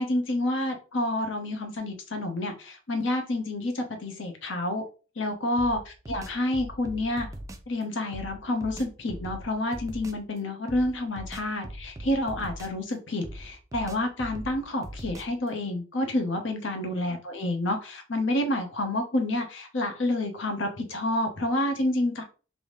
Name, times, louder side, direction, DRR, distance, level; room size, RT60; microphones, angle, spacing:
voice 1, 0.0-4.8 5.2-5.8 6.1-7.3 7.7-22.2, left 1 dB, 70° left, 4 dB, 0.8 m, -29 dB
sound 1, 5.6-7.7 8.1-10.3 10.7-12.9 13.2-15.5, right 1 dB, 15° right, 0.3 m, -41 dB
3.4 x 2.7 x 3.1 m, 0.35 s
head